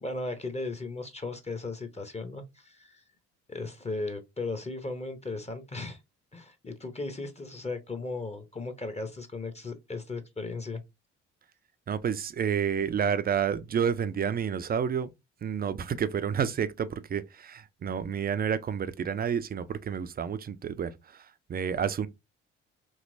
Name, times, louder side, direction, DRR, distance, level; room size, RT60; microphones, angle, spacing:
voice 1, 0.0-3.0 3.5-6.0 6.3-10.8, left 3 dB, 20° left, 0.8 m, -36 dB
voice 2, 11.9-15.1 15.4-22.1, right 7 dB, 25° right, 0.4 m, -30 dB
3.1 x 2.8 x 2.6 m
hypercardioid pair, 50°, 35 cm